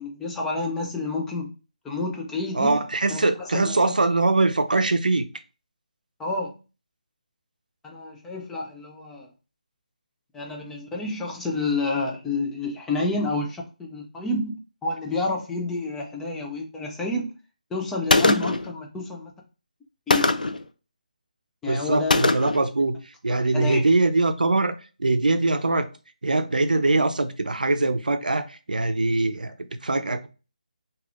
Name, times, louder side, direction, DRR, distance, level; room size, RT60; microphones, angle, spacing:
voice 1, 0.0-1.5 1.8-2.8 3.1-3.9 6.2-6.5 7.8-9.3 10.3-17.3 17.7-19.3 20.1-20.3 21.6-22.4 23.3-23.8, left 2 dB, 5° left, 0.3 m, -29 dB
voice 2, 2.5-5.3 21.7-22.9 23.2-24.7 25.0-25.9 26.2-29.5 29.8-30.3, right 2 dB, 90° right, 0.5 m, -22 dB
Gunshot gunfire, 18.1-18.7 20.1-20.6 22.1-22.7, left 2 dB, 85° left, 0.4 m, -21 dB
3.3 x 2.3 x 2.4 m
figure-of-eight pair, 160°, 4 cm